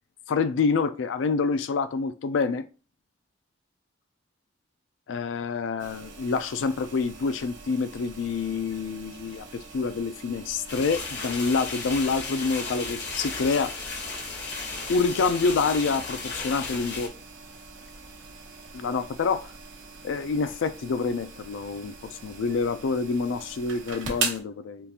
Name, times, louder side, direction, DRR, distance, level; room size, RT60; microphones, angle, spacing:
voice 1, 0.3-2.6 5.1-13.7 14.9-17.1 18.7-19.5 20.0-21.9 22.2-24.9, left 4 dB, 80° left, 0.4 m, -27 dB
sound 1, 5.8-24.4, right 5 dB, 85° right, 0.8 m, -41 dB
sound 2, 10.7-17.1, left 3 dB, 60° left, 1.0 m, -35 dB
3.7 x 2.4 x 2.7 m
head